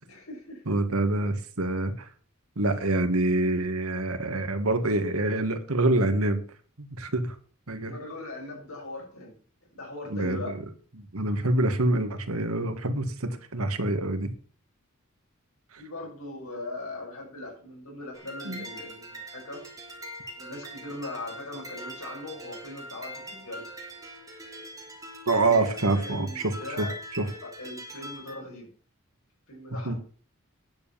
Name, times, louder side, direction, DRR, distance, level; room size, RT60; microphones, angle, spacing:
voice 1, 0.0-0.7 7.8-9.4 9.7-10.5 15.8-19.6 20.4-23.6 25.4-25.5 25.9-26.9 27.6-28.7 29.5-30.0, left 2 dB, 90° left, 0 dB, 6.2 m, -40 dB
voice 2, 0.7-2.1 2.6-6.4 6.8-7.4 7.7-7.9 10.1-10.6 10.9-14.3 15.7-15.8 18.5-18.6 25.3-26.9 27.2-27.3 29.8-30.0, right 2 dB, 90° right, 8 dB, 1.7 m, -26 dB
sound 1, 18.1-28.4, equal, 15° right, 3.0 m, -42 dB
10.0 x 7.1 x 7.0 m, 0.42 s
head